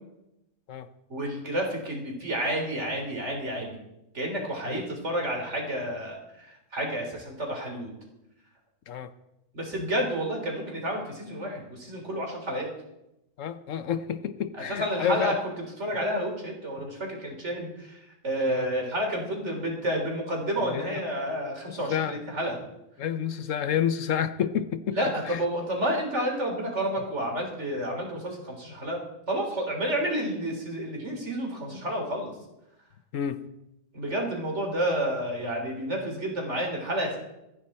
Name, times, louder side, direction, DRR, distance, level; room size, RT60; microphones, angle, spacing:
voice 1, 1.1-3.8 4.1-7.9 9.5-12.7 14.7-15.3 15.8-22.6 24.9-29.0 29.3-32.3 33.9-37.2, right 1 dB, 60° right, 3.7 m, -30 dB
voice 2, 13.4-15.4 18.5-18.7 20.6-21.0 21.7-22.2 23.0-25.0 25.3-25.4 33.1-33.4, left 8 dB, 75° left, 1.1 m, -29 dB
26.0 x 9.9 x 4.3 m
omnidirectional pair, 1.4 m